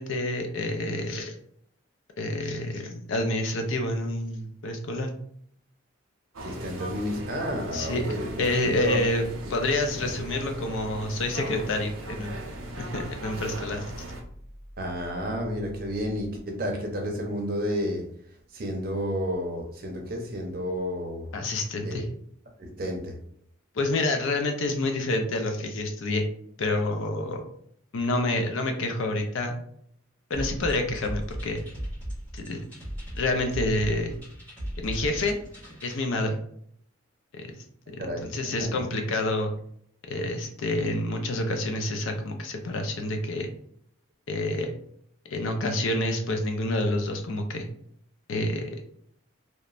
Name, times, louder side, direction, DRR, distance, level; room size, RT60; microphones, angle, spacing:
voice 1, 0.0-1.3 2.2-5.1 7.7-9.2 9.5-12.4 12.8-13.9 21.3-22.0 23.7-26.2 26.6-27.4 27.9-29.6 30.3-31.6 32.3-32.6 33.1-34.1 34.8-35.4 35.8-36.4 37.3-37.4 37.9-39.5 40.1-43.5 44.3-44.7 45.2-47.7 48.3-48.8, left 2 dB, 75° left, 4 dB, 0.5 m, -28 dB
sound 1, 6.3-14.2, right 1 dB, 90° right, 0.6 m, -39 dB
voice 2, 6.4-9.0 9.9-10.1 14.8-18.1 18.5-21.3 21.8-22.0 22.6-23.2 38.0-38.3 38.6-38.8, equal, 45° right, 2 dB, 0.6 m, -31 dB
sound 2, 8.3-16.3, equal, 30° left, 0.8 m, -47 dB
sound 3, 30.3-36.0, equal, 10° left, 1.3 m, -37 dB
3.0 x 2.1 x 2.4 m, 0.66 s
head